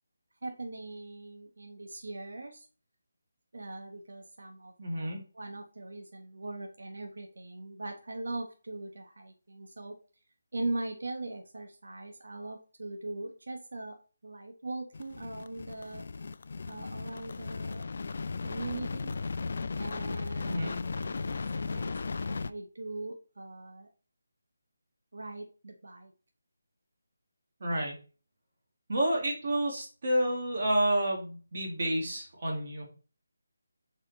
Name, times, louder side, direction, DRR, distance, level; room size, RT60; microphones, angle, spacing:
voice 1, 0.4-2.7 3.5-10.0 10.5-13.9 14.2-16.0 16.7-17.8 18.4-19.2 19.7-23.9 25.1-26.1, right 2 dB, 75° right, 3 dB, 1.1 m, -40 dB
voice 2, 4.8-5.2 20.4-20.8 27.6-28.0 28.9-32.8, right 1 dB, 40° right, -1 dB, 2.1 m, -29 dB
sound 1, 14.9-22.5, left 4 dB, 45° left, 0.3 m, -36 dB
6.3 x 4.3 x 4.1 m, 0.36 s
figure-of-eight pair, 175°, 0 cm